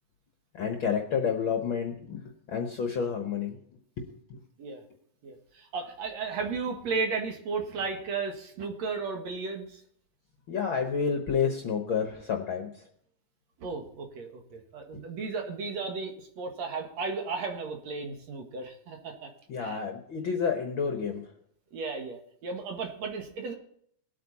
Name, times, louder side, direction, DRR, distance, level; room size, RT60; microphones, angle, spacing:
voice 1, 0.5-2.2 2.5-3.6 4.0-4.4 10.5-12.9 14.9-15.0 19.5-21.3, left 6 dB, 55° left, 4 dB, 1.4 m, -30 dB
voice 2, 5.2-9.8 13.6-19.3 19.6-19.8 21.7-23.5, right 4 dB, 65° right, 3 dB, 2.7 m, -34 dB
20.5 x 8.6 x 4.1 m, 0.66 s
omnidirectional pair, 3.5 m